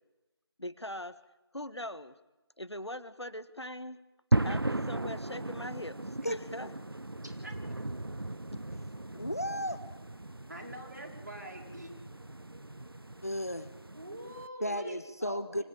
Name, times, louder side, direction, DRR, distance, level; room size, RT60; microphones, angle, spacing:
voice 1, 0.6-1.2 1.5-2.2 2.6-4.0 4.4-6.7, left 1 dB, 85° left, 13 dB, 1.5 m, -41 dB
sound 1, 4.3-14.5, right 2 dB, 60° right, 0.7 m, -36 dB
voice 2, 9.1-9.8 13.2-13.7 14.6-15.6, equal, 35° left, 12 dB, 0.9 m, -34 dB
voice 3, 10.5-11.9 13.9-15.6, right 1 dB, 45° right, 1 dB, 4.4 m, -44 dB
25.0 x 14.5 x 8.8 m, 1.0 s
figure-of-eight pair, 175°, 14 cm